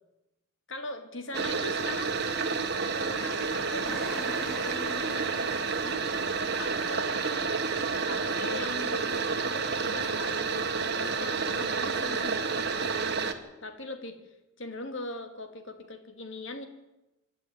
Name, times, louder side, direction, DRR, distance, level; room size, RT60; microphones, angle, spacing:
voice 1, 0.7-2.3 2.9-6.1 6.6-7.6 8.0-14.2 14.6-16.6, left 2 dB, 60° left, 6 dB, 2.6 m, -41 dB
sound 1, 1.3-13.3, right 5 dB, 50° right, 1.7 m, -30 dB
sound 2, 3.9-7.9, right 1 dB, ahead, 6.1 m, -45 dB
26.0 x 11.5 x 9.5 m, 0.99 s
head